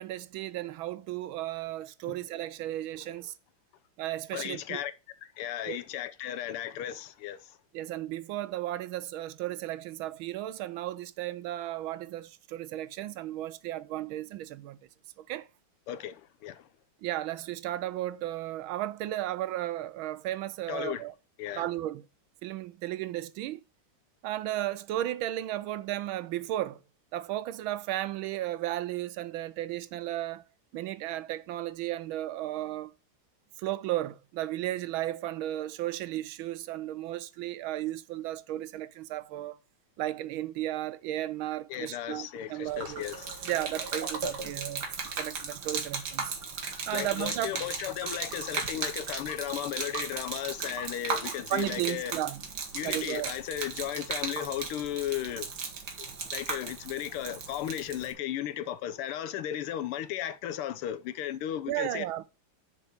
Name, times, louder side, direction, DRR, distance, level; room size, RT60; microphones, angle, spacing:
voice 1, 0.0-3.3 4.0-4.8 5.6-5.8 7.7-14.8 15.3-15.5 17.0-21.1 21.6-22.0 22.4-23.6 24.2-26.8 27.1-30.4 30.7-32.9 33.6-39.6 40.0-43.1 43.5-44.9 45.2-46.3 46.9-47.5 51.5-52.4 52.8-53.3 61.7-62.3, right 14 dB, 75° right, 1.3 m, -34 dB
voice 2, 4.3-4.9 5.4-7.4 15.9-16.2 16.4-16.5 20.7-21.0 21.4-21.6 41.7-43.3 46.9-52.1 52.7-55.5 56.3-62.0, left 11 dB, 90° left, 1.7 m, -35 dB
Gurgling / Liquid, 42.7-58.1, right 5 dB, 55° right, 1.8 m, -37 dB
6.9 x 4.8 x 6.9 m
omnidirectional pair, 2.4 m